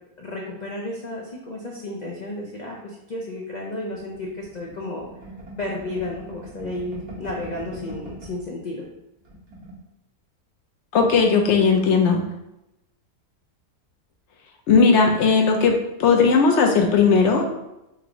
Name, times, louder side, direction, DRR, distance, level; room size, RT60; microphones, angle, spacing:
voice 1, 0.2-5.1 5.6-8.8, left 2 dB, 80° left, -1 dB, 0.3 m, -32 dB
sound 1, 3.9-8.5 8.8-8.9 9.2-9.8, equal, 85° right, 1.9 m, -40 dB
voice 2, 10.9-12.2 14.7-17.5, left 5 dB, 65° left, 2 dB, 0.8 m, -17 dB
5.5 x 2.5 x 3.0 m, 0.89 s
omnidirectional pair, 1.6 m